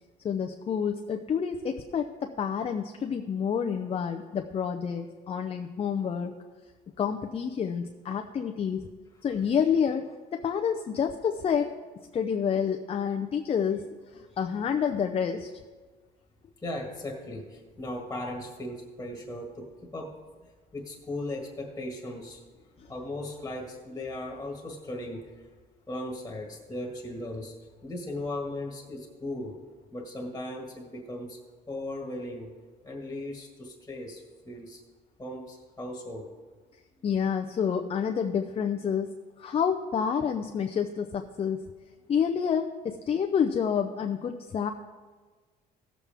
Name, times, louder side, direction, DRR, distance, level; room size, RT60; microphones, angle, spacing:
voice 1, 0.2-6.4 7.0-8.9 9.2-11.7 12.1-13.8 14.1-15.5 22.8-22.9 37.0-39.1 39.4-41.6 42.1-44.7, left 7 dB, 35° left, 5 dB, 0.5 m, -28 dB
voice 2, 16.6-20.2 20.7-22.4 22.9-25.2 25.9-27.5 27.8-29.6 29.9-31.4 31.7-32.5 32.8-34.8 35.2-36.3 37.0-37.1, left 1 dB, 15° left, 0 dB, 1.7 m, -37 dB
16.5 x 7.3 x 3.5 m, 1.4 s
cardioid pair, 110°, 17 cm